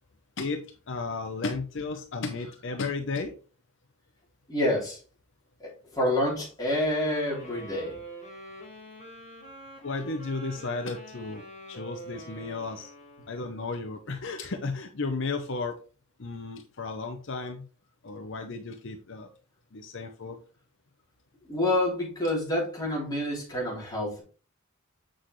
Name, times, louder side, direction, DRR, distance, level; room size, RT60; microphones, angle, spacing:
voice 1, 0.4-3.3 9.8-12.9 13.3-15.8 16.2-17.7 18.0-19.3 19.7-20.4, left 3 dB, 60° left, 6 dB, 0.8 m, -34 dB
voice 2, 4.5-5.0 5.6-8.0 21.5-24.2, left 1 dB, 20° left, -4 dB, 3.6 m, -28 dB
sound 1, 7.0-13.6, right 1 dB, 35° left, 3.7 m, -46 dB
7.7 x 6.3 x 3.2 m, 0.37 s
head